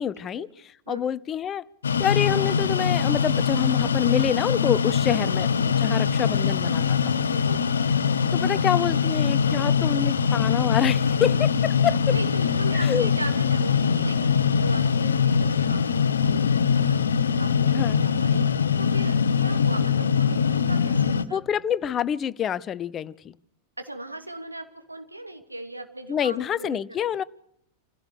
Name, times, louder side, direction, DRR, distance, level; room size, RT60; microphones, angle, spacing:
voice 1, 0.0-1.7 2.0-7.1 8.3-12.2 12.7-13.1 17.7-18.0 21.3-23.4 26.1-27.2, left 9 dB, 25° left, 0.8 m, -27 dB
sound 1, 1.8-21.2, left 6 dB, 70° left, 0.9 m, -22 dB
voice 2, 7.3-7.6 9.4-9.6 12.1-17.0 17.4-18.4 18.8-21.6 23.8-26.8, right 2 dB, 85° right, 2.5 m, -38 dB
28.0 x 16.5 x 6.6 m
figure-of-eight pair, 90°, 0 cm